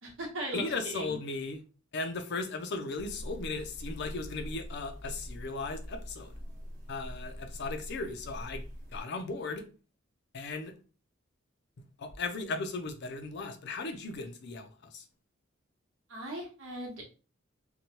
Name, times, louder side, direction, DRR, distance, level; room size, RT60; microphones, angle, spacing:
voice 1, 0.0-1.2 16.1-17.1, right 1 dB, 80° right, 1.0 m, -38 dB
voice 2, 0.5-1.6 1.9-6.3 6.9-8.6 8.9-9.7 10.3-10.7 11.8-15.1, left 3 dB, 60° left, 0.5 m, -37 dB
sound 1, 3.0-9.0, equal, 40° right, 1.0 m, -43 dB
2.8 x 2.2 x 2.9 m
head